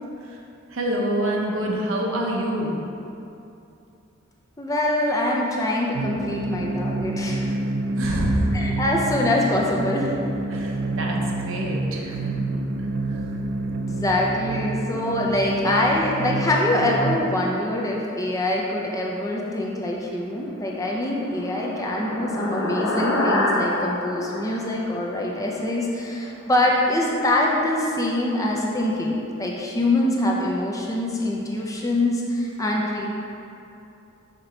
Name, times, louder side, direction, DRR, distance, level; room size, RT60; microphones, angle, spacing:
voice 1, 0.7-2.8 7.9-8.5 10.5-12.4 13.1-13.2, right 1 dB, 75° right, -1 dB, 0.8 m, -26 dB
voice 2, 4.6-7.5 8.5-10.1 13.9-33.1, left 1 dB, 15° left, -2 dB, 0.5 m, -24 dB
sound 1, 5.9-17.2, right 2 dB, 55° right, 0.4 m, -28 dB
sound 2, 20.7-25.5, left 1 dB, 90° left, 0.9 m, -27 dB
5.9 x 3.9 x 4.4 m, 2.7 s
head